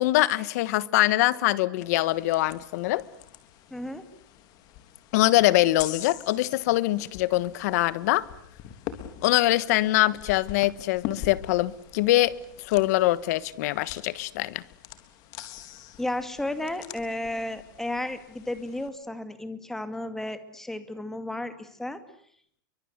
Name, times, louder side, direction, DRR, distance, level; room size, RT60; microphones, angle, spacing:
voice 1, 0.0-3.0 5.1-8.3 9.2-14.6, left 17 dB, 55° left, 1.4 m, -23 dB
sound 1, 1.8-18.9, left 11 dB, 40° left, 3.4 m, -44 dB
voice 2, 3.7-4.0 16.0-22.0, left 1 dB, 5° left, 2.3 m, -33 dB
30.0 x 24.5 x 8.1 m
supercardioid pair, 155°, 11 cm